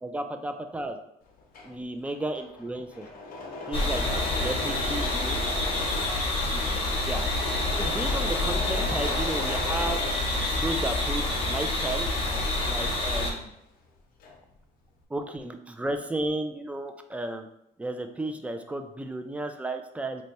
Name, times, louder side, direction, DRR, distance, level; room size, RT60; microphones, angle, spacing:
voice 1, 0.0-1.0 1.6-3.1 3.7-5.4 7.0-7.2 7.8-10.0 10.5-12.1 12.7-13.5 15.1-17.5 17.8-20.2, right 1 dB, 10° right, 6 dB, 0.3 m, -33 dB
Engine / Mechanisms, 1.3-10.9 11.2-13.6 13.8-14.6, left 2 dB, 60° left, 0.7 m, -38 dB
sound 1, 3.7-13.3, left 2 dB, 30° left, 0.9 m, -27 dB
3.1 x 2.1 x 4.1 m, 0.81 s
cardioid pair, 110°, 17 cm